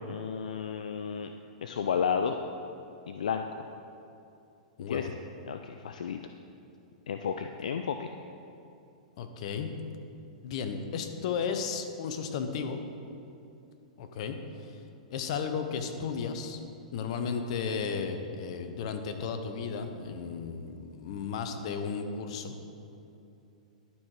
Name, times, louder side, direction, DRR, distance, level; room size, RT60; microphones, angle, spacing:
voice 1, 0.1-1.3 1.6-2.4 3.1-3.7 4.9-5.1 5.5-6.2 7.1-8.1, left 7 dB, 80° left, 6 dB, 0.4 m, -32 dB
voice 2, 4.8-5.1 9.2-9.7 10.4-12.8 14.0-14.7 15.1-16.6 16.9-22.6, left 6 dB, 55° left, 7 dB, 0.8 m, -34 dB
11.5 x 4.6 x 4.7 m, 2.8 s
hypercardioid pair, 120°, 4 cm